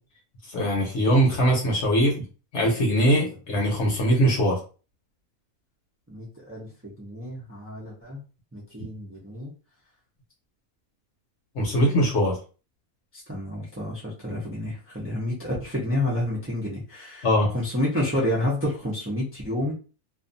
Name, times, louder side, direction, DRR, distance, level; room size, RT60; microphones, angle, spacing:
voice 1, 0.5-2.1 2.5-4.6 11.5-12.4 17.2-17.5, equal, 60° left, -1 dB, 1.0 m, -21 dB
voice 2, 6.1-8.2 8.5-9.5 13.1-17.3 17.5-19.7, left 1 dB, 20° right, -7 dB, 0.3 m, -29 dB
2.4 x 2.4 x 2.6 m, 0.35 s
omnidirectional pair, 1.4 m